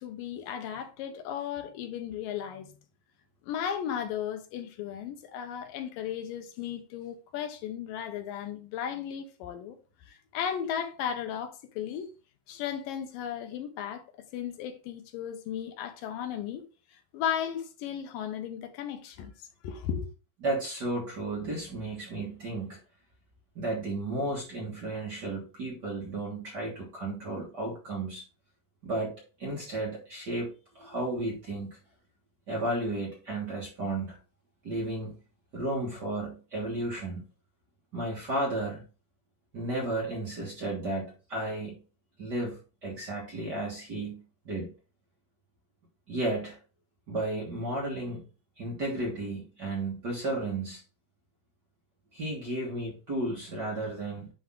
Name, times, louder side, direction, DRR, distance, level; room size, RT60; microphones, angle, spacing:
voice 1, 0.0-2.8 3.5-9.8 10.1-12.1 12.5-16.6 17.1-19.3 19.6-20.1, left 9 dB, 80° left, 2.6 m, -35 dB
voice 2, 20.4-22.8 23.5-28.2 28.8-31.8 32.5-34.2 34.6-35.2 35.5-37.2 37.9-38.9 39.5-41.8 42.2-44.7 46.1-46.6 47.1-48.2 48.6-50.8 52.1-54.3, right 2 dB, 40° right, 1.6 m, -33 dB
10.0 x 3.5 x 3.7 m
omnidirectional pair, 4.0 m